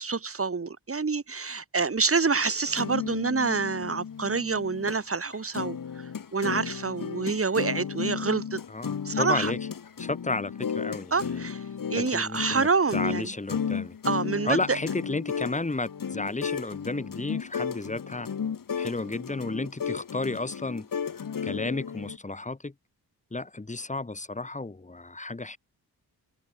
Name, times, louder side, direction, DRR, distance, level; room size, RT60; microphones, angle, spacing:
voice 1, 0.0-8.6 9.0-9.5 11.1-11.6 11.9-13.3 14.0-14.8, right 4 dB, 35° right, 5.1 m, -27 dB
sound 1, 2.5-5.0 5.3-22.2, left 7 dB, 55° left, 3.6 m, -34 dB
voice 2, 8.7-9.6 10.0-11.4 11.9-14.0 14.4-18.3 18.8-20.9 21.4-22.7 23.3-25.6, left 2 dB, 20° left, 4.0 m, -32 dB
wide cardioid pair, 140°, 39 cm